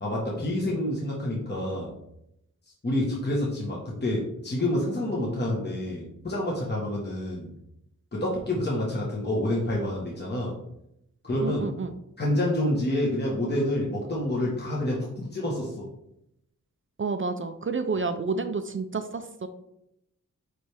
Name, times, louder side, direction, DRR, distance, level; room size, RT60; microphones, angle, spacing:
voice 1, 0.0-1.9 2.8-7.5 8.1-10.5 11.2-11.7 12.2-15.9, left 1 dB, 30° left, -4 dB, 1.3 m, -28 dB
voice 2, 11.4-11.9 17.0-19.5, right 4 dB, 40° right, 9 dB, 0.4 m, -30 dB
9.6 x 3.3 x 3.4 m, 0.80 s
wide cardioid pair, 110°, 33 cm